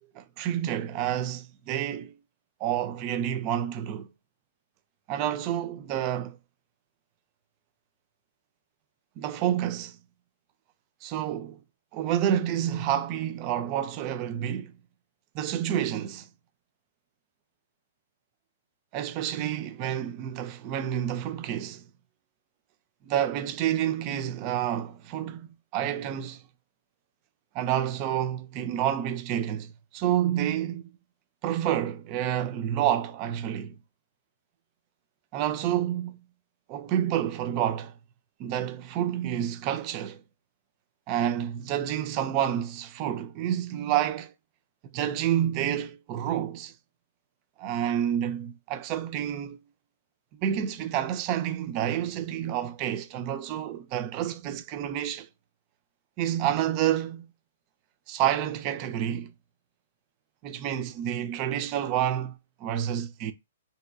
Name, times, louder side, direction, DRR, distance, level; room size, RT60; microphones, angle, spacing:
voice 1, 0.2-2.1 2.6-4.1 5.1-6.4 9.2-10.0 11.0-11.6 11.9-14.7 15.3-16.3 18.9-21.8 23.1-26.4 27.5-31.0 31.4-33.8 35.3-36.2 36.7-37.9 38.4-40.2 41.1-44.3 44.9-46.7 47.6-49.6 50.4-55.3 56.2-57.3 58.1-59.3 60.4-63.3, right 10 dB, 35° right, 0.4 m, -29 dB
2.9 x 2.9 x 2.3 m
figure-of-eight pair, 115°, 0 cm